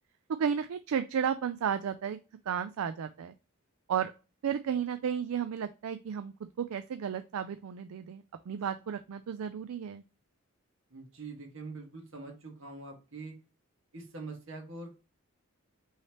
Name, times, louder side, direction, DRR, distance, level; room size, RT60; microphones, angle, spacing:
voice 1, 0.4-2.2 2.5-3.3 3.9-4.1 4.4-10.0, right 7 dB, 75° right, 10 dB, 0.4 m, -33 dB
voice 2, 10.9-13.4 13.9-14.9, right 3 dB, 60° right, 1 dB, 1.7 m, -44 dB
5.6 x 3.3 x 2.9 m, 0.32 s
head